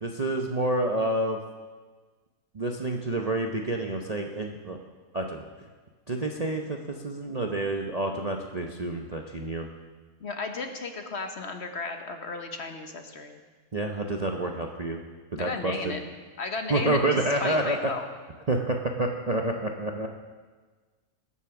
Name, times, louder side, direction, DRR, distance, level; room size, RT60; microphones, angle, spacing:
voice 1, 0.0-1.4 2.5-4.8 5.1-5.4 6.1-9.7 13.7-15.0 15.3-15.9 16.7-17.8 18.5-20.1, right 2 dB, 35° right, 2 dB, 0.7 m, -28 dB
voice 2, 10.2-13.4 15.4-16.0 16.4-17.0 17.4-18.1, left 4 dB, 50° left, 5 dB, 1.2 m, -34 dB
21.0 x 7.1 x 6.0 m, 1.4 s
omnidirectional pair, 1.6 m